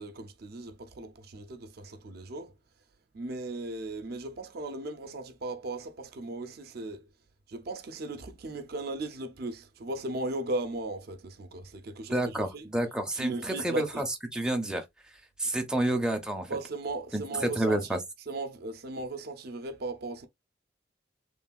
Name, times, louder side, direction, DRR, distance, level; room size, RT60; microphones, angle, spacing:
voice 1, 0.0-2.5 3.1-7.0 7.5-12.7 13.1-14.0 16.5-17.9 18.3-20.3, right 2 dB, 60° right, 0.5 m, -37 dB
voice 2, 12.1-14.1 14.3-14.8 15.4-16.5 17.1-18.0, right 1 dB, 5° right, 0.5 m, -29 dB
3.1 x 2.3 x 2.3 m
head